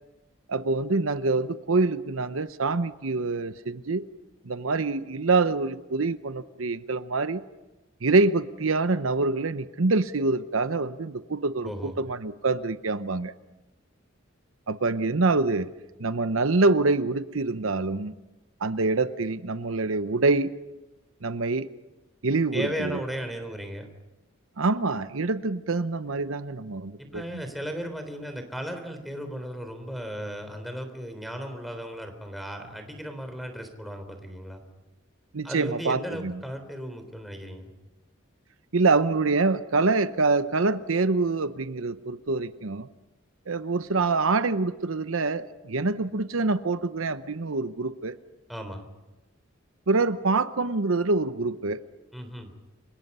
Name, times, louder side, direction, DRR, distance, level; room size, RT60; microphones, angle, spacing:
voice 1, 0.5-4.0 4.4-7.4 8.0-13.3 14.7-15.7 16.0-18.1 18.6-20.5 21.2-21.7 22.2-23.0 24.6-27.4 35.3-36.4 38.7-42.9 43.5-48.2 49.9-51.8, right 3 dB, 85° right, 12 dB, 0.9 m, -25 dB
voice 2, 11.6-11.9 22.5-23.9 27.0-34.6 35.4-37.7 48.5-48.9 52.1-52.5, equal, ahead, 5 dB, 3.7 m, -36 dB
29.0 x 25.0 x 5.6 m, 1.0 s
head